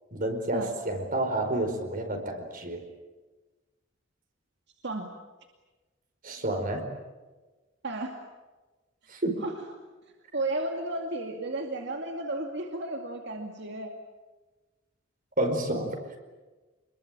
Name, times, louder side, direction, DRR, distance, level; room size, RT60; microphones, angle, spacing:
voice 1, 0.1-2.9 6.2-6.9 9.1-9.4 15.4-16.0, right 1 dB, 45° right, 5 dB, 4.7 m, -29 dB
voice 2, 7.8-8.2 9.4-9.5 10.3-13.9, right 2 dB, 60° right, 3 dB, 2.5 m, -33 dB
28.0 x 22.0 x 8.9 m, 1.2 s
head